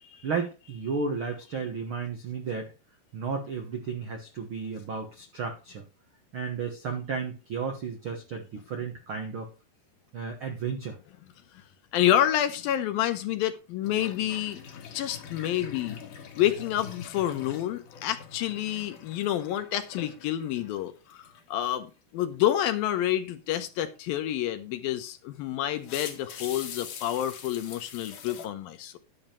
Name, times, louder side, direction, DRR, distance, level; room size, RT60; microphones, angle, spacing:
voice 1, 0.2-2.7 3.1-5.8 6.3-9.5 10.1-11.0, right 5 dB, 70° right, 1.2 m, -33 dB
voice 2, 11.9-14.6 14.9-16.0 16.4-29.0, left 12 dB, 75° left, 2.5 m, -28 dB
sound 1, 13.8-20.8 21.1-21.5 24.8-24.9 25.7-28.5, left 7 dB, 60° left, 2.9 m, -44 dB
11.0 x 7.2 x 4.4 m
omnidirectional pair, 4.5 m